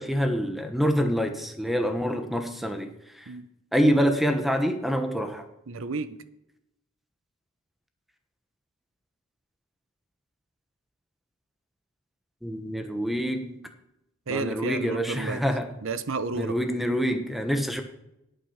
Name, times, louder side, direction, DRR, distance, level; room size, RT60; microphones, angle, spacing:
voice 1, 0.0-2.9 3.2-3.3 3.7-5.4 12.4-13.6 14.3-15.7 16.3-17.8, equal, ahead, 6 dB, 1.0 m, -26 dB
voice 2, 5.7-6.2 14.3-15.4 15.8-16.6, right 3 dB, 60° right, 13 dB, 0.7 m, -31 dB
11.0 x 8.9 x 5.7 m, 0.86 s
head